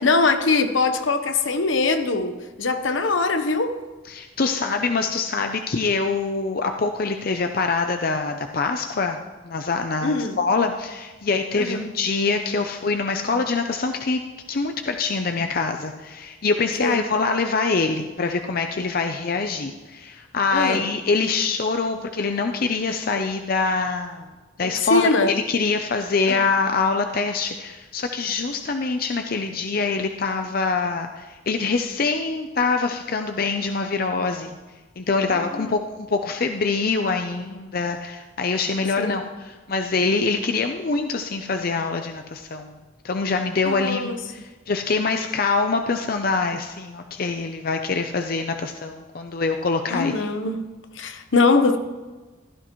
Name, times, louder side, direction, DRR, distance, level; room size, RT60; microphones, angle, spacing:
voice 1, 0.0-3.8 10.0-10.4 11.6-11.9 16.8-17.0 20.5-20.9 24.6-25.4 26.3-26.4 35.5-35.8 39.0-39.2 43.7-44.2 49.9-51.8, left 3 dB, 70° left, 1.0 m, -22 dB
voice 2, 4.1-9.2 9.4-14.2 14.5-24.3 24.6-34.5 35.0-42.8 43.0-50.3, left 4 dB, 50° left, 0.6 m, -24 dB
15.5 x 12.5 x 3.1 m
head